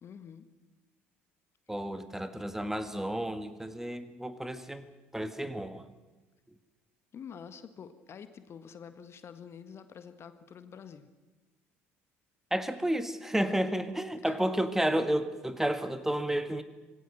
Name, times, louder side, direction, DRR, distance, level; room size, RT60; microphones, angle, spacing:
voice 1, 0.0-0.5 7.1-11.1 14.3-14.4, left 7 dB, 40° left, 11 dB, 1.6 m, -47 dB
voice 2, 1.7-4.9 5.1-5.9 12.5-16.6, right 1 dB, 5° right, 10 dB, 1.8 m, -31 dB
26.0 x 19.0 x 6.6 m, 1.2 s
figure-of-eight pair, 60°, 7 cm